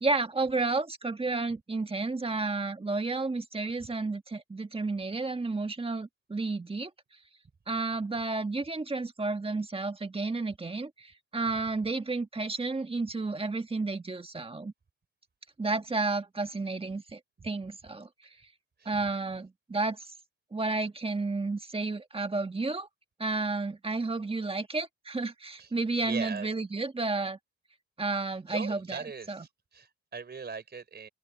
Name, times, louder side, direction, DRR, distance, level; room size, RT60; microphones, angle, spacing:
voice 1, 0.0-6.9 7.7-14.7 15.6-18.1 18.8-20.1 20.5-22.9 23.2-27.4 28.0-29.0 29.3-29.4, right 3 dB, 20° right, 1.7 m, -31 dB
voice 2, 26.0-26.5 28.3-31.1, right 5 dB, 35° right, 4.4 m, -40 dB
open air
cardioid pair, 90°, 30 cm